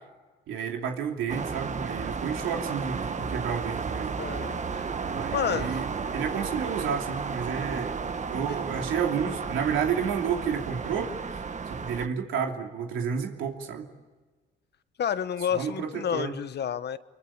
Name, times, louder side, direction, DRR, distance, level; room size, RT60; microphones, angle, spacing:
voice 1, 0.5-4.1 5.1-8.0 8.3-11.4 11.7-13.9 15.5-16.3, right 7 dB, 90° right, 3 dB, 2.8 m, -31 dB
sound 1, 1.3-12.1, right 5 dB, 35° right, 1.5 m, -33 dB
voice 2, 4.2-4.9 5.3-5.8 15.0-17.0, left 8 dB, 55° left, 13 dB, 1.2 m, -30 dB
25.5 x 23.5 x 8.7 m, 1.3 s
cardioid pair, 90°, 20 cm